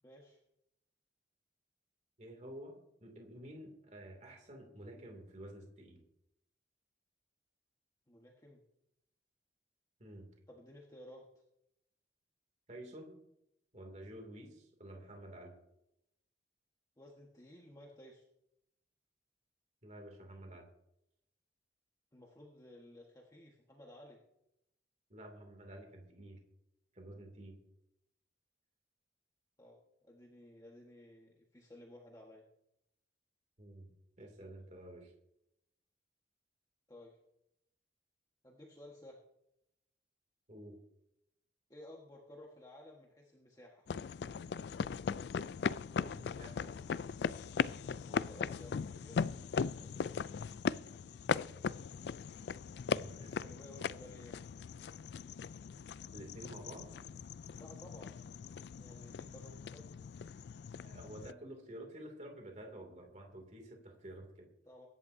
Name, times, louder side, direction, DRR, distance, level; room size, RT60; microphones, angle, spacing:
voice 1, 0.0-0.4 8.1-8.6 10.5-11.2 17.0-18.2 22.1-24.2 29.6-32.4 36.9-37.2 38.4-39.2 41.7-43.9 48.0-49.2 49.8-50.2 53.1-54.5 57.6-58.2 58.8-59.9 64.6-64.9, left 1 dB, 20° left, -2 dB, 1.5 m, -55 dB
voice 2, 2.2-6.0 10.0-10.3 12.7-13.1 13.7-15.5 19.8-20.6 25.1-26.4 26.9-27.6 33.6-33.9 34.2-35.1 40.5-40.8 46.0-46.7 52.8-53.5 56.1-57.0 60.8-64.5, right 1 dB, 40° right, 2 dB, 2.7 m, -50 dB
sound 1, 43.9-61.3, left 6 dB, 65° left, 0.3 m, -39 dB
23.5 x 11.0 x 2.7 m, 0.83 s
head